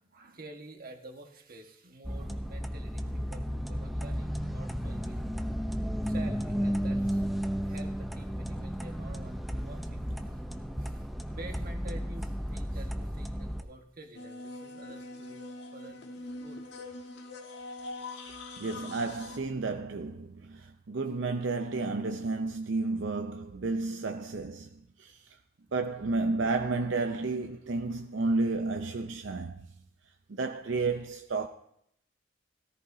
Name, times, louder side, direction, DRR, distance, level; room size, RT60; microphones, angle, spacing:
voice 1, 0.0-5.3 6.0-7.3 7.6-10.4 10.8-15.4 15.7-16.6, right 2 dB, 50° right, 1.5 m, -49 dB
sound 1, 2.0-13.6, equal, ahead, 0.7 m, -33 dB
sound 2, 14.1-19.4, left 2 dB, 65° left, 1.8 m, -43 dB
voice 2, 18.6-25.2 25.7-29.7 30.3-31.5, right 3 dB, 75° right, 0.6 m, -32 dB
18.0 x 13.5 x 2.7 m
head